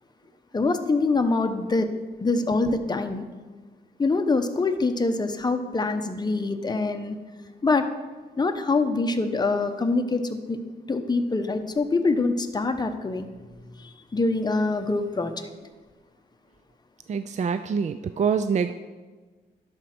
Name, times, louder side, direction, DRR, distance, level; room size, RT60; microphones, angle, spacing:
voice 1, 0.5-1.9 2.2-3.2 4.0-7.2 7.6-7.8 8.4-10.2 10.5-10.6 10.9-13.3 14.1-15.3, left 3 dB, 25° left, 6 dB, 0.9 m, -24 dB
voice 2, 17.1-18.7, right 6 dB, 40° right, 10 dB, 0.4 m, -25 dB
11.0 x 4.5 x 6.0 m, 1.4 s
cardioid pair, 75°, 18 cm